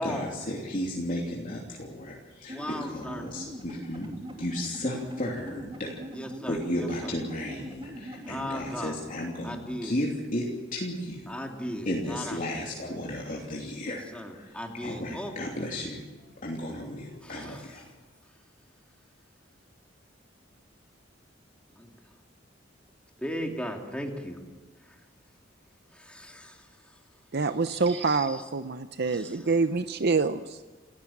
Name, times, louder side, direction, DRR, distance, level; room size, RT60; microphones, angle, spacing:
voice 1, 0.0-4.1 4.4-6.0 6.5-11.3 11.8-14.0 14.3-17.9, left 1 dB, 45° left, -2 dB, 3.1 m, -34 dB
voice 2, 2.5-3.3 6.1-7.1 8.3-9.0 9.4-9.9 11.3-12.6 13.8-15.3 17.2-17.7 21.8-21.9 23.2-24.4 24.9-25.0 25.9-26.7 27.7-28.4 29.1-29.4, equal, 5° left, 1 dB, 3.0 m, -37 dB
sound 1, 2.5-8.8, equal, 30° right, 3.0 m, -42 dB
voice 3, 27.3-30.6, right 4 dB, 60° right, 10 dB, 0.7 m, -26 dB
29.5 x 16.0 x 7.3 m, 1.3 s
head